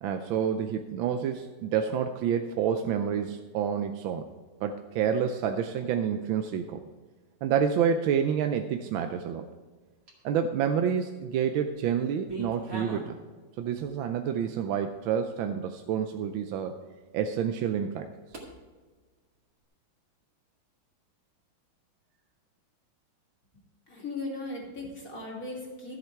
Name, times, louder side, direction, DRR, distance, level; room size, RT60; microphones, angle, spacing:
voice 1, 0.0-4.3 4.6-6.8 7.4-9.5 10.2-13.1 13.6-16.7 17.1-18.1, right 8 dB, 75° right, 6 dB, 1.4 m, -28 dB
sound 1, 9.9-10.5 11.1-11.7 11.9-13.2 13.6-14.1 14.7-14.8 15.4-15.5 16.1-16.2 18.3-18.5, right 1 dB, 40° right, 2.6 m, -41 dB
voice 2, 23.9-26.0, left 2 dB, 40° left, -2 dB, 3.1 m, -37 dB
13.5 x 8.3 x 4.6 m, 1.4 s
omnidirectional pair, 2.3 m